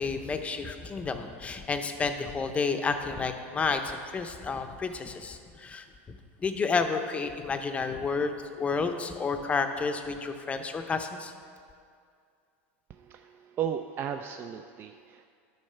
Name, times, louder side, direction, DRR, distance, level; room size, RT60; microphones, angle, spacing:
voice 1, 0.0-5.9 6.4-11.3, left 4 dB, 20° left, 7 dB, 0.6 m, -30 dB
voice 2, 12.9-15.3, right 9 dB, 30° right, 6 dB, 0.3 m, -35 dB
11.5 x 4.5 x 5.6 m, 2.3 s
supercardioid pair, 125°, 7 cm